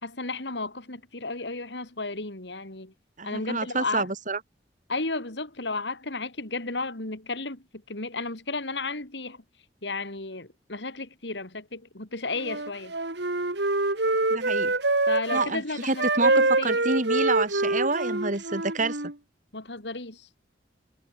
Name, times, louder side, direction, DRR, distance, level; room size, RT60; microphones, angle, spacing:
voice 1, 0.0-2.9 3.2-4.1 4.9-9.4 9.8-12.9 15.1-16.8 19.5-20.2, left 3 dB, 70° left, 3.6 m, -33 dB
voice 2, 3.2-4.4 14.3-14.7 15.3-19.0, right 3 dB, 45° right, 3.6 m, -28 dB
Wind instrument woodwind instrument, 12.4-15.5 16.0-19.1, right 2 dB, 70° right, 3.6 m, -25 dB
head